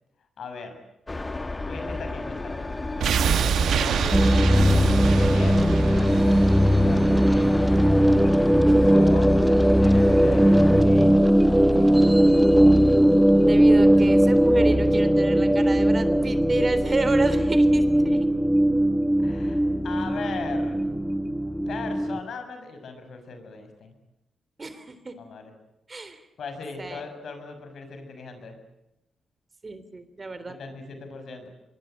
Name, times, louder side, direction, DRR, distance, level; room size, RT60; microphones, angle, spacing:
voice 1, 0.4-0.8 1.6-2.7 3.7-4.4 5.1-7.6 8.8-9.3 9.8-12.1 19.2-20.9 21.7-23.9 25.2-25.5 26.4-28.6 30.5-31.5, left 4 dB, 65° left, 7 dB, 6.5 m, -38 dB
sound 1, 1.1-10.8, left 2 dB, 20° left, 1.9 m, -32 dB
sound 2, 3.0-8.0 8.3-8.4, right 8 dB, 80° right, 1.1 m, -27 dB
sound 3, 4.1-22.2, equal, 5° right, 1.2 m, -19 dB
voice 2, 13.5-18.3 24.6-25.1 25.9-26.2 26.8-27.0 29.6-30.6, right 3 dB, 30° right, 12 dB, 3.4 m, -31 dB
24.5 x 23.5 x 9.0 m, 0.88 s
cardioid pair, 85°, 0 cm